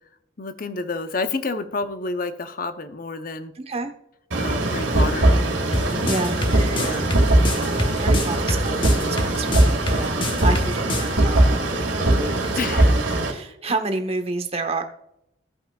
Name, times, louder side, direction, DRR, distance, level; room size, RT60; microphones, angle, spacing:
voice 1, 0.4-3.5 4.4-5.3 6.7-7.0 12.5-12.9, left 3 dB, 45° left, 9 dB, 0.7 m, -29 dB
voice 2, 3.5-3.9 6.0-6.4 7.7-14.8, right 2 dB, 30° right, 7 dB, 0.9 m, -30 dB
sound 1, 4.3-13.3, right 1 dB, 75° right, 2.1 m, -20 dB
sound 2, 5.7-11.1, left 1 dB, 25° left, 1.0 m, -26 dB
16.0 x 5.6 x 2.3 m, 0.78 s
head